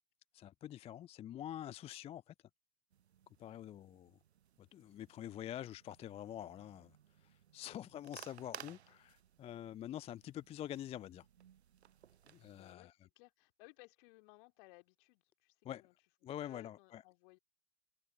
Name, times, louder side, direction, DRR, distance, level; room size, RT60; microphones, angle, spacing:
voice 1, 0.3-2.3 3.4-4.2 4.6-6.9 7.2-11.3 12.3-12.9 15.6-15.8 16.2-17.0, left 11 dB, 20° left, 0.4 m, -46 dB
sound 1, 2.9-12.7, right 9 dB, 80° right, 0.6 m, -58 dB
voice 2, 12.5-15.9 16.2-17.4, left 26 dB, 50° left, 2.5 m, -62 dB
figure-of-eight pair, 85°, 32 cm